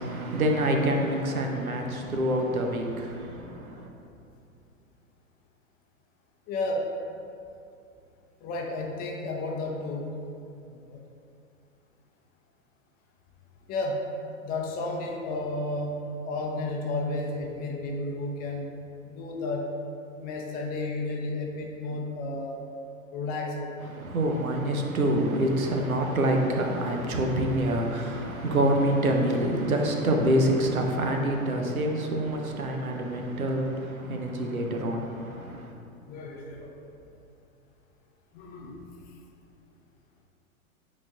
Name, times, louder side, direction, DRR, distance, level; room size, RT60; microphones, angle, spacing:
voice 1, 0.0-3.9 23.9-35.7, right 1 dB, 75° right, 2 dB, 0.9 m, -26 dB
voice 2, 6.5-6.9 8.4-10.1 10.7-11.0 13.7-14.1 14.4-18.7 19.1-19.7 20.2-22.6 23.1-23.7 36.1-37.0 38.3-38.8, left 2 dB, 20° left, -1 dB, 0.6 m, -32 dB
9.4 x 4.3 x 2.4 m, 2.7 s
figure-of-eight pair, 100°, 42 cm